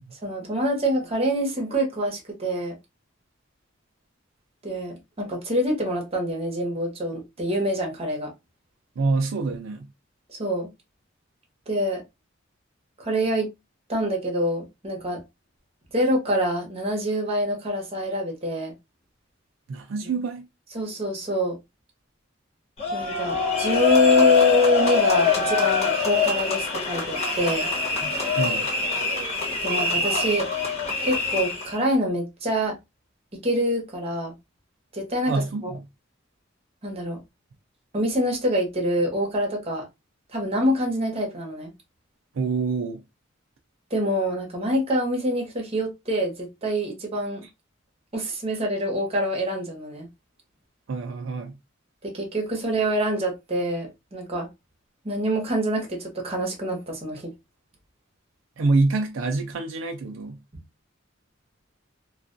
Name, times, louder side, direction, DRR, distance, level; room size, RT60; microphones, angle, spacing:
voice 1, 0.1-2.8 4.6-8.3 10.4-10.7 11.7-12.0 13.0-13.5 13.9-15.2 15.9-18.7 20.7-21.6 22.9-27.7 29.6-30.5 31.0-32.8 33.4-34.3 34.9-35.7 36.8-37.2 37.9-39.8 40.3-41.7 43.9-47.5 48.1-50.1 52.0-54.5 55.0-57.3, equal, 30° right, 0.9 m, -25 dB
voice 2, 9.0-9.9 19.7-20.5 28.4-28.7 35.3-35.8 42.3-43.0 50.9-51.6 58.6-60.4, right 3 dB, 75° right, 0.4 m, -26 dB
sound 1, 22.8-31.7, left 5 dB, 35° left, 1.0 m, -24 dB
2.3 x 2.2 x 2.4 m
head